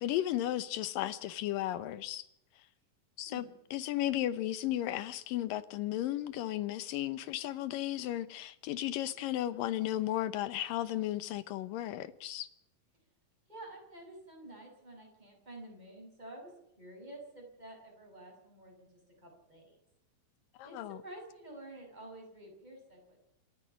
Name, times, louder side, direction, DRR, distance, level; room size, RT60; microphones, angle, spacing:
voice 1, 0.0-2.2 3.2-3.5 3.7-12.5 20.6-21.0, left 13 dB, 75° left, 2.5 m, -34 dB
voice 2, 3.3-3.6 13.5-16.5 16.8-19.8 20.6-20.8 21.0-23.2, right 1 dB, 10° right, 6.4 m, -50 dB
28.0 x 9.8 x 9.9 m
omnidirectional pair, 4.2 m